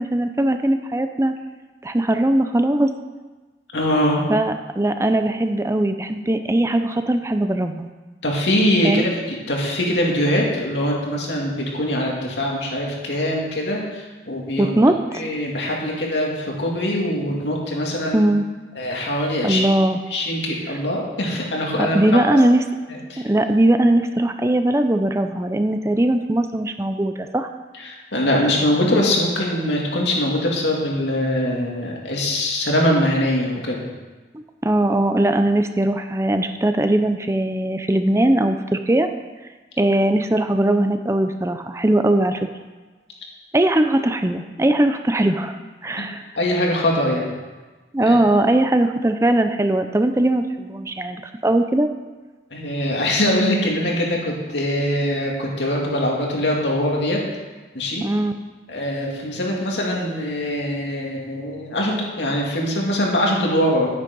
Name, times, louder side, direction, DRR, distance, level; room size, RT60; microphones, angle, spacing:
voice 1, 0.0-1.3 1.8-2.9 4.3-7.9 8.8-9.1 14.6-15.2 18.1-18.4 19.4-20.0 20.7-20.8 21.8-22.6 23.2-27.5 34.6-39.1 39.8-42.5 43.5-45.5 45.8-46.2 47.9-51.9 58.0-58.4, right 1 dB, 15° right, 7 dB, 0.5 m, -20 dB
voice 2, 3.7-4.2 8.2-14.7 15.1-18.3 18.8-19.6 20.1-22.0 22.3-22.4 22.9-23.3 27.8-33.8 46.0-46.1 46.4-47.3 48.0-48.1 52.5-57.2 57.7-58.0 58.7-63.9, left 1 dB, 90° left, -2 dB, 2.6 m, -22 dB
10.5 x 9.7 x 5.4 m, 1.3 s
head